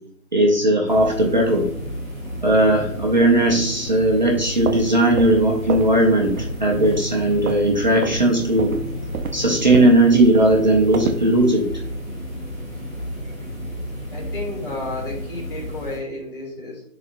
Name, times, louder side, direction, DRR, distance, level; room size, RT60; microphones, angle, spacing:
voice 1, 0.3-1.7 2.4-8.7 9.3-11.7, right 1 dB, 35° right, -1 dB, 0.8 m, -17 dB
sound 1, 0.9-16.0, equal, 5° right, 1.1 m, -32 dB
sound 2, 4.4-6.0 6.2-6.5 6.8-7.7 8.0-8.2 8.6-11.3, right 6 dB, 90° right, 0.8 m, -29 dB
voice 2, 14.1-16.8, left 2 dB, 40° left, -3 dB, 2.6 m, -32 dB
9.6 x 4.2 x 2.5 m, 0.69 s
hypercardioid pair, 175°, 42 cm